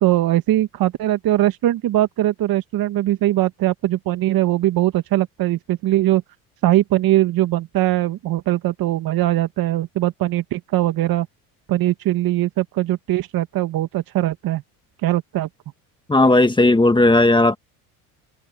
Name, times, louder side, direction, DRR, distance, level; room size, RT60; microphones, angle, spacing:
voice 1, 0.0-6.2 6.6-11.3 11.7-14.6 15.0-15.5, right 14 dB, 55° right, 2.0 m, -20 dB
voice 2, 16.1-17.6, left 2 dB, 10° left, 1.9 m, -15 dB
supercardioid pair, 85°, 42 cm